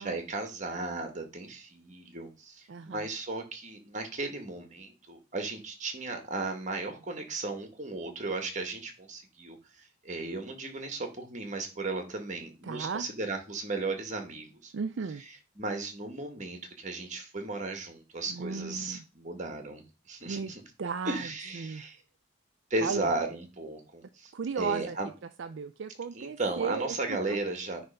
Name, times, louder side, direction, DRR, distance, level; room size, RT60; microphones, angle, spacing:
voice 1, 0.0-14.7 15.2-20.6 21.0-22.0 22.7-25.1 26.1-27.9, right 2 dB, 35° right, 5 dB, 1.6 m, -35 dB
voice 2, 2.7-3.0 12.6-13.1 14.7-15.2 18.3-19.0 20.2-20.5 20.8-21.2 21.6-21.8 22.8-23.1 24.3-25.0 25.4-27.4, right 5 dB, 65° right, 9 dB, 0.4 m, -35 dB
9.4 x 3.3 x 5.3 m, 0.30 s
head